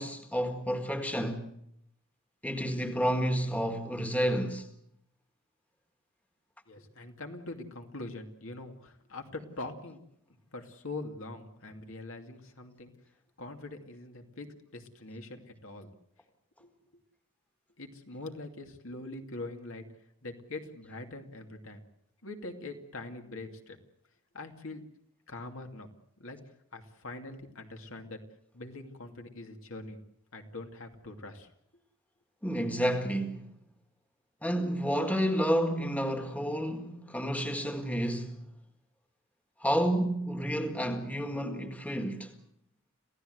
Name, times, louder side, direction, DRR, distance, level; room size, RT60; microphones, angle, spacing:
voice 1, 0.0-1.4 2.4-4.7 32.4-33.5 34.4-38.5 39.6-42.4, equal, 5° left, 1.8 m, -30 dB
voice 2, 6.7-10.0 10.5-12.9 13.4-15.9 16.6-16.7 17.8-19.8 20.2-21.8 22.2-23.8 24.3-24.8 25.3-25.9 26.2-26.4 26.7-28.2 28.5-30.0 30.3-31.5, left 2 dB, 65° left, 2.6 m, -43 dB
27.5 x 16.0 x 8.0 m
head